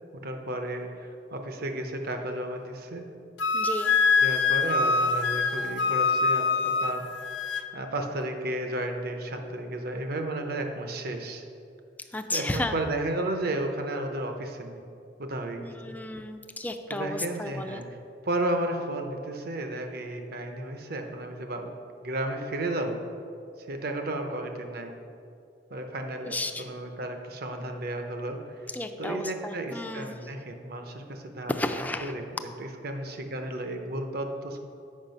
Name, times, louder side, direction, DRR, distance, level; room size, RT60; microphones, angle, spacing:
voice 1, 0.1-3.0 4.2-7.1 7.7-11.4 12.3-14.8 15.2-15.7 16.9-17.8 18.2-21.7 22.0-23.0 23.6-24.9 25.7-28.7 29.0-34.6, right 1 dB, 55° right, 5 dB, 0.8 m, -33 dB
Wind instrument woodwind instrument, 3.4-7.7, left 4 dB, 75° left, 0.4 m, -24 dB
voice 2, 3.5-4.0 12.1-12.8 15.6-17.8 26.2-26.7 28.7-30.2 31.5-32.1, left 2 dB, 10° left, 6 dB, 0.4 m, -33 dB
7.4 x 5.5 x 5.3 m, 2.5 s
head